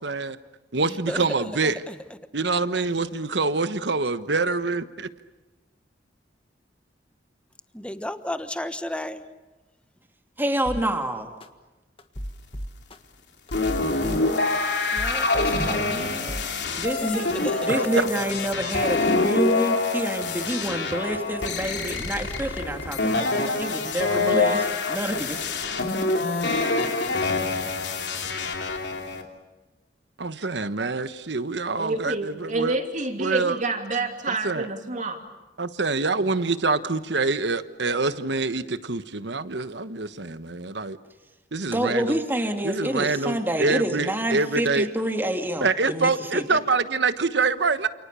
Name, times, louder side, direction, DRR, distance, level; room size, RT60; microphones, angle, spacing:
voice 1, 0.0-0.4 0.7-1.8 2.3-5.1 30.2-32.8 33.2-33.6 34.4-34.7 35.6-41.0 41.5-42.2 42.6-44.9 45.6-47.9, right 3 dB, 70° right, 12 dB, 1.3 m, -25 dB
voice 2, 0.9-1.9 7.7-9.2 14.9-16.5 17.0-17.6, left 1 dB, 5° left, 10 dB, 1.2 m, -34 dB
voice 3, 10.4-11.3 16.8-17.3 17.6-25.5 41.7-46.6, right 1 dB, 10° right, 4 dB, 2.7 m, -28 dB
sound 1, 10.6-10.8 11.4-11.5 12.0-13.0 13.5-14.6 15.0-16.0 16.3-16.5, equal, 30° left, 1.7 m, -34 dB
sound 2, 13.5-29.2, left 3 dB, 70° left, 3.3 m, -26 dB
voice 4, 31.8-35.2, right 2 dB, 45° right, 4 dB, 2.9 m, -28 dB
29.0 x 28.5 x 7.0 m, 1.1 s
head